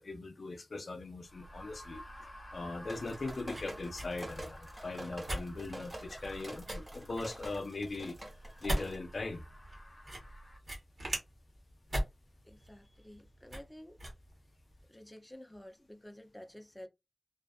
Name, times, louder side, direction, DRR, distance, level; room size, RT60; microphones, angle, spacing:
voice 1, 0.0-2.0 2.5-8.2 8.6-9.4, left 3 dB, 70° left, 0.4 m, -40 dB
sound 1, 1.2-10.6, equal, 30° left, 0.8 m, -52 dB
sound 2, 2.8-14.8, equal, 60° right, 1.0 m, -41 dB
sound 3, 2.9-9.0, right 1 dB, 25° right, 1.1 m, -47 dB
voice 2, 12.4-14.0 14.9-16.9, left 1 dB, 10° left, 0.5 m, -51 dB
2.4 x 2.4 x 2.2 m
wide cardioid pair, 65°, 0 cm